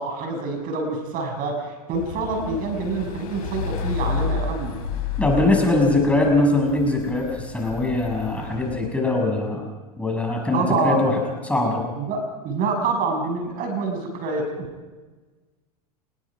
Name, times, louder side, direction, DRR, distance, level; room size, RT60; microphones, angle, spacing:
voice 1, 0.0-4.8 10.5-11.1 12.0-14.7, right 3 dB, 45° right, 4 dB, 6.4 m, -26 dB
sound 1, 1.9-8.8, left 5 dB, 65° left, 6.3 m, -31 dB
voice 2, 5.2-9.6 10.0-11.2 11.4-11.8, left 2 dB, 5° left, 1 dB, 6.6 m, -21 dB
29.0 x 20.5 x 5.0 m, 1.3 s
hypercardioid pair, 105°, 20 cm